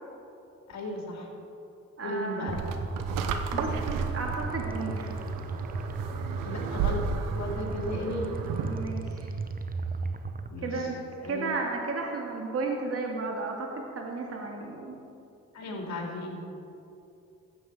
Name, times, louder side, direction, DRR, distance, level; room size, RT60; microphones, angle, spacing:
voice 1, 0.7-1.3 2.0-2.6 6.4-7.0 7.3-8.4 10.5-10.9 11.2-11.5 15.5-16.4, left 1 dB, 60° left, -1 dB, 3.1 m, -35 dB
voice 2, 2.0-2.5 3.5-5.2 8.6-9.3 10.6-11.0 11.2-15.0, right 3 dB, 50° right, 1 dB, 2.3 m, -33 dB
sound 1, 2.5-10.5, right 3 dB, 30° right, 0.8 m, -35 dB
sound 2, 2.5-8.9, right 6 dB, 90° right, 0.9 m, -34 dB
14.0 x 8.2 x 4.9 m, 2.7 s
supercardioid pair, 65°, 31 cm